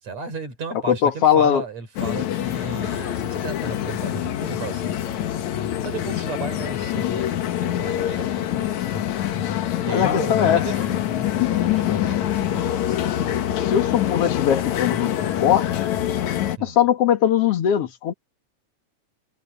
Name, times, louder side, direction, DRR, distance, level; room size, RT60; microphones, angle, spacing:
voice 1, 0.0-5.0 5.8-9.0 9.8-13.6 16.6-16.8, right 4 dB, 60° right, 5.7 m, -35 dB
voice 2, 0.9-1.6 9.9-10.6 13.3-15.1 15.4-15.8 16.6-18.1, left 9 dB, 55° left, 2.3 m, -20 dB
sound 1, 2.0-16.6, left 11 dB, 70° left, 2.6 m, -25 dB
omnidirectional pair, 3.5 m